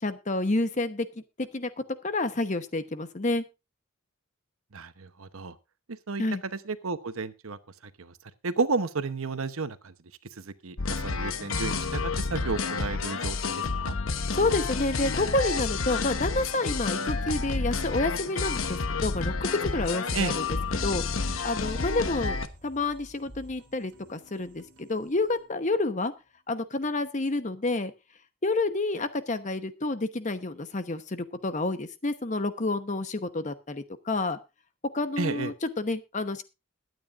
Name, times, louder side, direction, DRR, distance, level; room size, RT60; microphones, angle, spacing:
voice 1, 0.0-1.1 1.4-1.7 2.0-3.4 6.2-6.4 14.3-20.4 20.7-22.4 22.6-26.1 26.5-27.9 28.4-34.4 34.9-36.4, left 2 dB, 35° left, 11 dB, 1.0 m, -29 dB
voice 2, 4.7-5.5 6.1-6.2 6.7-7.6 8.4-9.9 10.6-12.0 12.3-14.0 20.1-20.4 35.2-35.5, right 4 dB, 80° right, 12 dB, 0.9 m, -31 dB
sound 1, 10.8-22.5, left 4 dB, 70° left, 1.0 m, -30 dB
sound 2, 20.3-25.9, equal, 60° right, 2.1 m, -49 dB
21.5 x 9.4 x 2.5 m, 0.25 s
head